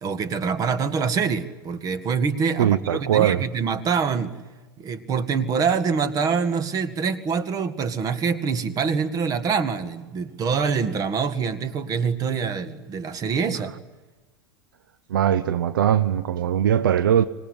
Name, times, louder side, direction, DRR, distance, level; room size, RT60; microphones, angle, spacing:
voice 1, 0.0-4.3 4.8-13.7, right 5 dB, 30° right, 2.0 m, -25 dB
voice 2, 2.6-3.4 15.1-17.3, right 10 dB, 65° right, 0.8 m, -20 dB
25.5 x 20.0 x 9.9 m
figure-of-eight pair, 90°, 12 cm